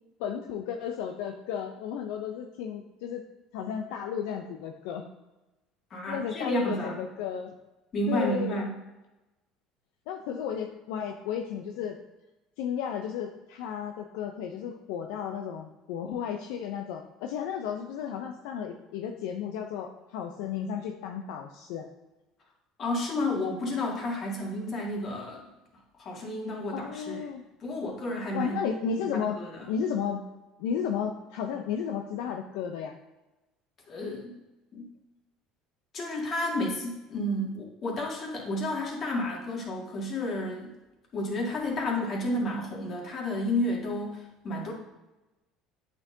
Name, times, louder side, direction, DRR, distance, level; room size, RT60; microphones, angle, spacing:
voice 1, 0.2-3.2 3.5-5.0 6.1-7.5 8.1-8.7 10.1-12.0 12.6-21.9 26.7-27.4 28.3-29.4 29.7-30.2 30.6-33.0, left 7 dB, 75° left, 4 dB, 0.4 m, -33 dB
voice 2, 5.9-6.9 7.9-8.7 22.8-25.5 26.0-27.2 27.6-28.6 29.0-29.6 33.9-34.4 34.7-34.9 35.9-40.7 41.1-44.7, left 1 dB, 45° left, -2 dB, 2.0 m, -31 dB
8.5 x 4.4 x 2.6 m, 1.0 s
supercardioid pair, 80°, 0 cm